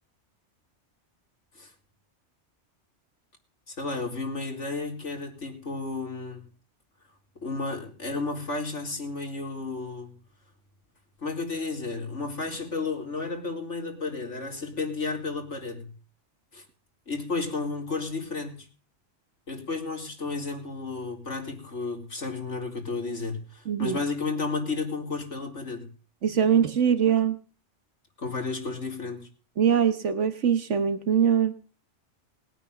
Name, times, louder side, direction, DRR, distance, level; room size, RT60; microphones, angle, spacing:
voice 1, 3.7-6.5 7.4-10.1 11.2-15.9 16.5-16.6 17.1-18.7 19.5-25.9 28.2-29.3, left 3 dB, 85° left, 2 dB, 4.4 m, -32 dB
voice 2, 23.7-24.0 26.2-27.4 29.6-31.5, right 8 dB, 80° right, 12 dB, 1.6 m, -22 dB
20.0 x 9.0 x 6.9 m, 0.38 s
omnidirectional pair, 1.2 m